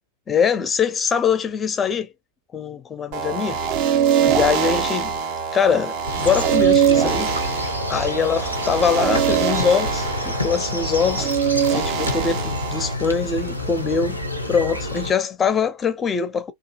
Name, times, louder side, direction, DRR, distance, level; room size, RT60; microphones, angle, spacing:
voice 1, 0.3-2.1 2.5-3.6 4.2-5.2 5.5-7.3 7.9-11.3 11.7-14.2 14.5-16.5, left 6 dB, 20° left, 0.4 m, -23 dB
sound 1, 3.1-12.9, right 8 dB, 45° right, 0.5 m, -23 dB
sound 2, 6.0-15.1, left 1 dB, 90° right, 0.6 m, -28 dB
2.7 x 2.4 x 2.3 m
figure-of-eight pair, 90°, 0 cm